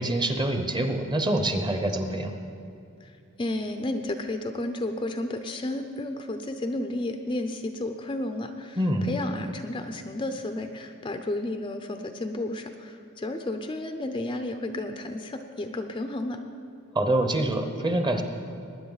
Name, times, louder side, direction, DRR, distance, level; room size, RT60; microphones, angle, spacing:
voice 1, 0.0-2.3 8.8-9.1 16.9-18.2, right 1 dB, 20° right, 6 dB, 0.8 m, -25 dB
voice 2, 3.0-16.4, left 1 dB, 20° left, 6 dB, 0.5 m, -32 dB
19.5 x 10.0 x 4.0 m, 2.6 s
head